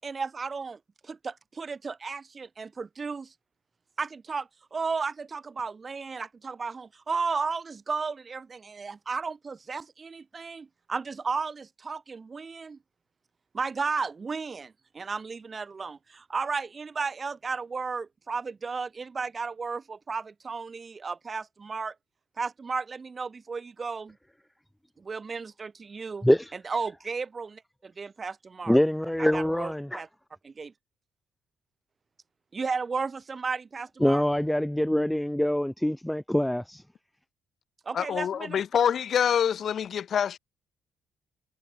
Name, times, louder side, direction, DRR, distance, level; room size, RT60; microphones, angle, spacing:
voice 1, 0.0-3.3 4.0-12.8 13.5-21.9 22.4-24.2 25.0-28.8 29.2-30.1 30.4-30.7 32.5-34.2 37.8-38.6, right 4 dB, 30° right, 6.2 m, -34 dB
voice 2, 28.7-29.6 34.0-36.6, left 1 dB, 5° left, 0.3 m, -24 dB
voice 3, 37.9-40.4, left 8 dB, 50° left, 5.7 m, -26 dB
cardioid pair, 125°, 0 cm